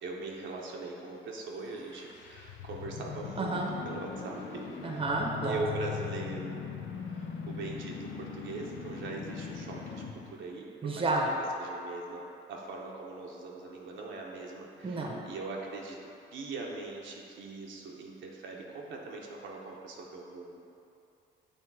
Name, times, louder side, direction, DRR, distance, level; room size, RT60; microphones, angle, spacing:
voice 1, 0.0-4.7 5.4-6.6 7.1-20.6, right 3 dB, 70° right, -1 dB, 0.8 m, -41 dB
sound 1, 1.7-10.3, left 6 dB, 70° left, 0.6 m, -40 dB
voice 2, 3.4-3.7 4.8-5.6 10.8-11.3 14.8-15.1, right 2 dB, 25° right, 0 dB, 0.8 m, -30 dB
6.9 x 3.3 x 4.7 m, 2.8 s
cardioid pair, 90°, 20 cm